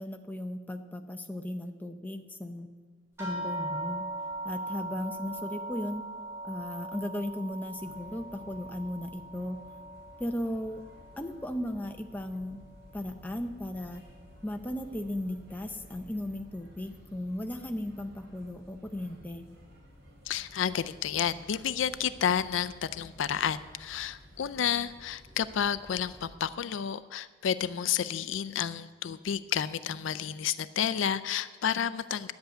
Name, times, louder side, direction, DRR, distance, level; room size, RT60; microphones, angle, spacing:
voice 1, 0.0-2.7 3.2-4.1 4.4-6.0 6.4-9.6 10.2-10.8 11.2-12.6 12.9-14.0 14.4-19.4, left 1 dB, 10° left, 5 dB, 0.6 m, -36 dB
sound 1, 3.2-12.0 12.3-13.2 13.9-14.0 14.5-14.6, right 2 dB, 15° right, 3.9 m, -40 dB
sound 2, 7.8-26.4, equal, 70° right, 3.2 m, -54 dB
voice 2, 20.3-32.3, left 8 dB, 75° left, 14 dB, 0.4 m, -31 dB
10.5 x 8.0 x 8.1 m, 1.5 s
head